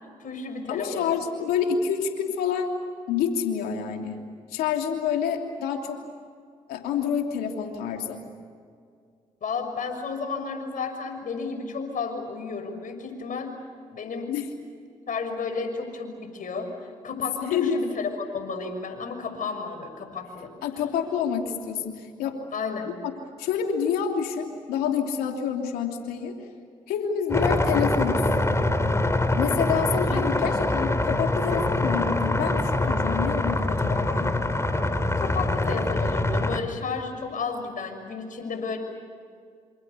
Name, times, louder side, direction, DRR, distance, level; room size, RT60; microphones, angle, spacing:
voice 1, 0.0-1.2 9.4-13.5 13.9-14.3 15.1-16.7 17.0-20.5 22.5-22.9 30.1-30.2 35.3-38.8, left 4 dB, 60° left, 6 dB, 6.3 m, -32 dB
voice 2, 0.7-2.7 3.1-4.2 4.5-6.0 6.7-8.2 14.3-14.5 17.4-17.8 20.6-22.4 23.4-26.4 26.9-28.2 29.3-34.3, left 7 dB, 85° left, 3 dB, 3.0 m, -27 dB
sound 1, 27.3-36.6, left 2 dB, 20° left, 3.4 m, -24 dB
27.5 x 27.0 x 7.0 m, 2.2 s
supercardioid pair, 45°, 15 cm